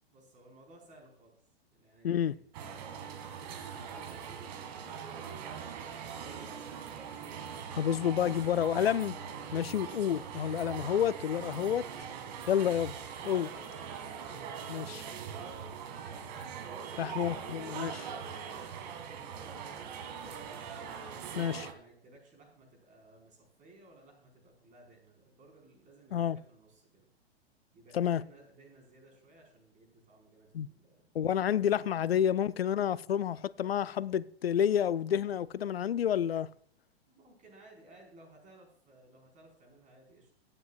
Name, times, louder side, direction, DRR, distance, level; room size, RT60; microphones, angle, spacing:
voice 1, 0.1-1.4 1.7-4.9 5.8-7.3 13.6-14.1 14.7-15.8 16.8-20.5 21.1-27.1 27.7-31.0 37.1-40.3, right 2 dB, 25° right, 4.7 m, -59 dB
voice 2, 2.0-2.3 7.8-9.2 9.5-11.9 12.5-12.9 13.2-13.5 14.7-15.0 17.0-17.9 21.4-21.7 26.1-26.4 27.9-28.2 30.5-30.7 31.1-36.5, left 9 dB, 70° left, 0.5 m, -29 dB
sound 1, 2.5-21.7, right 7 dB, 45° right, 2.1 m, -42 dB
20.5 x 9.9 x 2.4 m
figure-of-eight pair, 105°, 32 cm